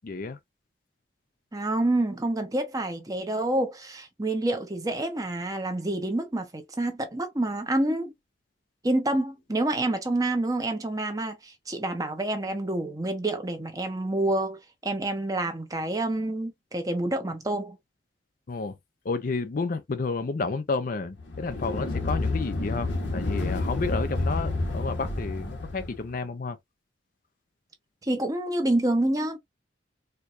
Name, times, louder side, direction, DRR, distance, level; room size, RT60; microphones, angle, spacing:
voice 1, 0.0-0.4 18.5-18.7 19.0-26.6, left 3 dB, 45° left, 0.4 m, -31 dB
voice 2, 1.5-8.1 8.8-17.8 28.0-29.4, right 1 dB, 20° right, 0.8 m, -28 dB
sound 1, 21.2-26.0, left 2 dB, 70° left, 1.1 m, -29 dB
4.5 x 2.3 x 2.4 m
head